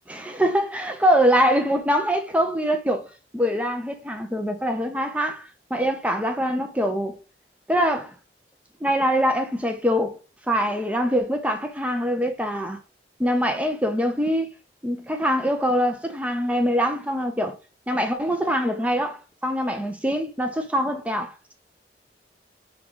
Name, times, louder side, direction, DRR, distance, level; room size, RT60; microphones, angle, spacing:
voice 1, 0.1-3.0 3.3-7.1 7.7-8.1 8.8-10.2 10.5-12.8 13.2-14.5 14.8-17.5 17.9-21.5, equal, 10° right, 0.6 m, -23 dB
3.6 x 3.3 x 3.8 m
head